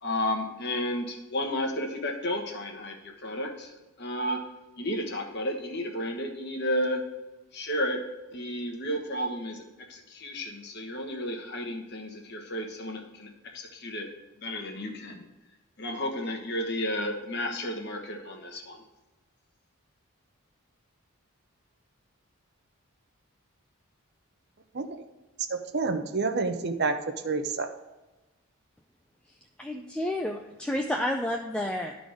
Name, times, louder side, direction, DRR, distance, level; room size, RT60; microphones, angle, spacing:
voice 1, 0.0-4.4 4.8-7.0 7.5-8.0 8.3-9.6 9.9-14.1 14.4-15.2 15.8-18.8, left 1 dB, 50° left, 2 dB, 1.3 m, -32 dB
voice 2, 25.5-26.9 27.2-27.7, right 4 dB, 50° right, 6 dB, 0.7 m, -28 dB
voice 3, 29.6-31.9, left 1 dB, 5° left, 1 dB, 0.4 m, -30 dB
12.0 x 4.0 x 4.9 m, 1.1 s
head